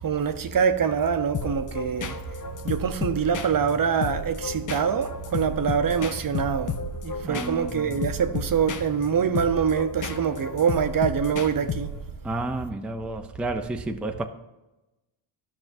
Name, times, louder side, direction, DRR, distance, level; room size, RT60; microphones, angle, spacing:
voice 1, 0.0-2.2 2.6-11.9, right 7 dB, 45° right, 0.7 m, -25 dB
sound 1, 1.3-12.2, left 4 dB, 40° left, 0.7 m, -33 dB
voice 2, 7.2-8.0 12.2-14.3, right 2 dB, ahead, 0.5 m, -31 dB
12.0 x 6.0 x 2.6 m
cardioid pair, 70°, 50 cm